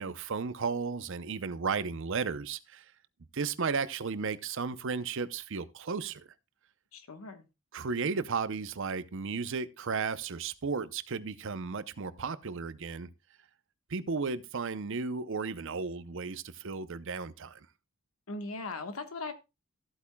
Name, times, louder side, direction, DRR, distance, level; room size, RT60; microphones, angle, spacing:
voice 1, 0.0-2.8 3.3-6.3 7.7-13.1 13.9-17.6, right 5 dB, 65° right, 0.6 m, -34 dB
voice 2, 6.9-7.5 18.3-19.3, left 3 dB, 90° left, 1.3 m, -39 dB
14.0 x 8.4 x 2.2 m
head